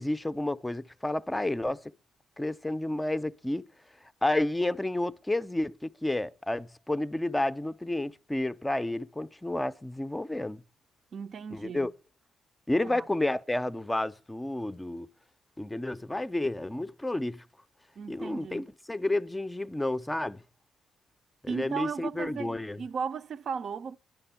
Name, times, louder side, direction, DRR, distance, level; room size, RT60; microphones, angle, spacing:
voice 1, 0.0-1.8 2.4-3.7 4.2-10.6 11.5-11.9 12.7-15.1 15.6-17.4 18.1-20.4 21.4-22.8, left 1 dB, 10° left, 0.5 m, -30 dB
voice 2, 11.1-11.9 12.8-13.0 18.0-18.6 21.5-24.0, right 6 dB, 55° right, 0.5 m, -36 dB
11.0 x 10.5 x 5.7 m
cardioid pair, 90°, 0 cm